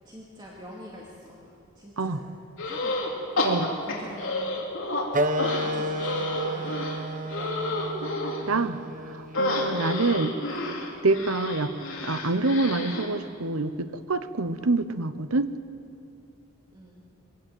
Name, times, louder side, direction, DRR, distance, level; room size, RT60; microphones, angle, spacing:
voice 1, 0.0-2.3 2.6-4.6 5.6-7.8 16.7-17.0, equal, 20° right, -4 dB, 2.4 m, -45 dB
sound 1, 2.6-3.1 3.4-5.0 5.4-8.4 9.3-13.1, left 2 dB, 65° left, 3.8 m, -30 dB
Wind instrument woodwind instrument, 5.1-10.3, right 1 dB, 40° right, 0.9 m, -31 dB
voice 2, 8.5-8.8 9.4-10.3 11.0-11.7 12.0-15.5, right 3 dB, 80° right, 12 dB, 1.0 m, -26 dB
23.0 x 18.0 x 7.9 m, 2.6 s
head